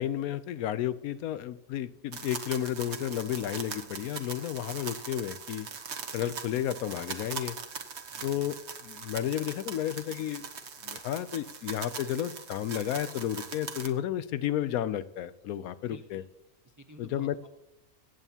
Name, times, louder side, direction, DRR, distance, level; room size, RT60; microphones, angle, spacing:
voice 1, 0.0-5.7 6.1-7.6 8.2-8.6 8.8-10.4 10.8-16.2 17.0-17.3, left 11 dB, 75° left, 15 dB, 1.0 m, -32 dB
sound 1, 2.1-13.9, right 5 dB, 50° right, 1.2 m, -41 dB
voice 2, 8.1-8.5 15.9-16.3 16.6-17.5, equal, 20° right, 5 dB, 0.5 m, -51 dB
23.0 x 9.1 x 2.8 m, 0.87 s
omnidirectional pair, 1.5 m